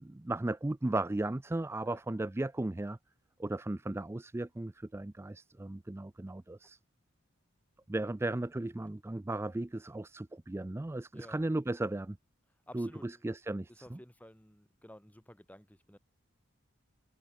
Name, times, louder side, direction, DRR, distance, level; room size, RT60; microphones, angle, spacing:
voice 1, 0.0-3.0 3.4-6.8 7.9-12.2 12.7-14.0, right 2 dB, 10° right, 0.3 m, -36 dB
voice 2, 11.1-11.5 12.7-13.2 13.7-16.0, left 1 dB, 5° left, 4.9 m, -54 dB
head